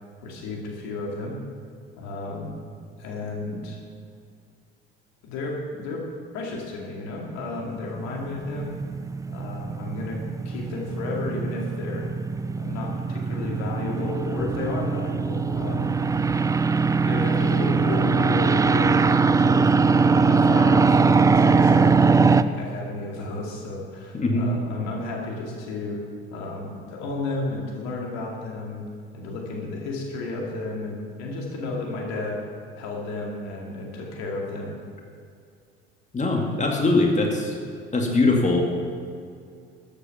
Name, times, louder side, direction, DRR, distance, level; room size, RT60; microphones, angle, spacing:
voice 1, 0.2-1.4 2.0-2.7 3.0-3.8 5.2-6.0 6.3-8.8 9.3-12.1 12.6-16.0 17.0-19.7 20.2-26.0 26.3-28.8 29.1-32.4 32.8-34.7, left 2 dB, 60° left, -1 dB, 2.5 m, -32 dB
sound 1, 7.8-22.4, right 4 dB, 10° right, 0.4 m, -21 dB
voice 2, 24.1-24.5 36.1-37.5 37.9-38.6, left 2 dB, 25° left, 1 dB, 2.2 m, -21 dB
14.0 x 8.5 x 5.8 m, 2.3 s
figure-of-eight pair, 55°, 31 cm